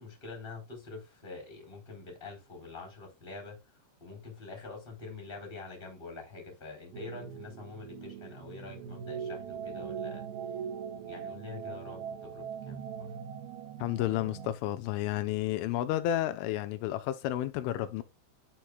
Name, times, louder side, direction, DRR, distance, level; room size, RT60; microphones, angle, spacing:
voice 1, 0.0-10.3 11.0-13.1, left 3 dB, 10° left, 3.5 m, -46 dB
sound 1, 6.9-14.5, right 7 dB, 75° right, 2.3 m, -41 dB
voice 2, 13.8-18.0, left 13 dB, 85° left, 3.3 m, -31 dB
10.5 x 6.2 x 2.3 m
omnidirectional pair, 5.5 m